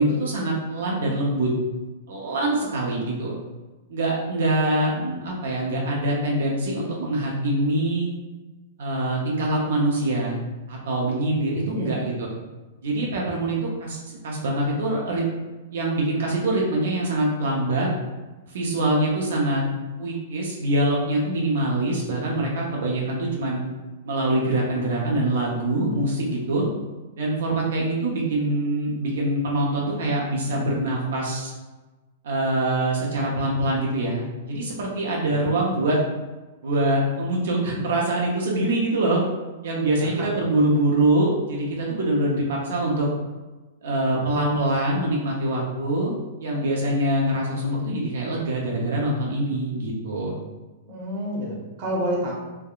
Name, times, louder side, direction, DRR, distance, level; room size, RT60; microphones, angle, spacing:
voice 1, 0.0-1.5 2.1-3.3 3.9-8.1 8.8-10.4 10.7-12.3 12.8-15.2 15.7-17.9 18.5-19.6 20.0-23.6 24.0-26.7 27.2-31.5 32.2-36.0 36.6-39.2 39.6-43.1 43.8-46.1 46.4-50.4, right 1 dB, 80° right, -3 dB, 0.6 m, -24 dB
voice 2, 11.5-11.9 35.3-35.6 39.9-40.3 50.9-52.3, equal, 40° right, -3 dB, 0.9 m, -30 dB
3.4 x 2.2 x 2.3 m, 1.2 s
supercardioid pair, 160°, 0 cm